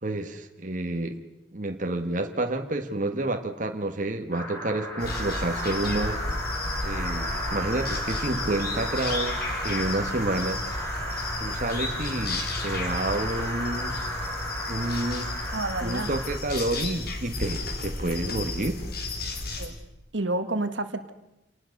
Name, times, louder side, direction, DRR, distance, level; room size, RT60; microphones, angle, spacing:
voice 1, 0.0-1.2 1.5-6.2 6.8-10.6 11.4-13.9 14.7-15.3 15.8-18.9, right 2 dB, 45° right, 5 dB, 1.6 m, -29 dB
sound 1, 4.3-16.4, equal, 15° left, 6.7 m, -34 dB
sound 2, 5.0-19.7, left 2 dB, 55° left, 3.8 m, -33 dB
voice 2, 15.5-16.1 19.6-19.7 20.1-21.1, right 2 dB, 75° right, 9 dB, 1.8 m, -29 dB
28.5 x 19.0 x 6.6 m, 0.90 s
head